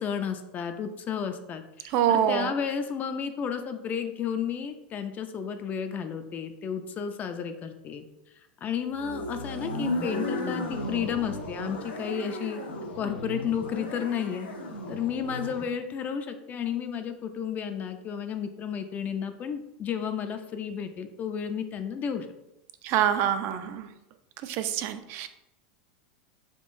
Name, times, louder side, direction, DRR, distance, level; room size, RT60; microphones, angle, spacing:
voice 1, 0.0-8.0 8.6-12.6 13.0-14.5 14.9-22.3, left 7 dB, 30° left, 7 dB, 0.4 m, -32 dB
voice 2, 1.9-2.5 22.8-23.9 24.4-25.3, right 10 dB, 50° right, 10 dB, 0.4 m, -25 dB
sound 1, 8.9-15.7, left 1 dB, 90° left, 0.8 m, -35 dB
3.7 x 3.4 x 2.5 m, 0.88 s
hypercardioid pair, 115°, 5 cm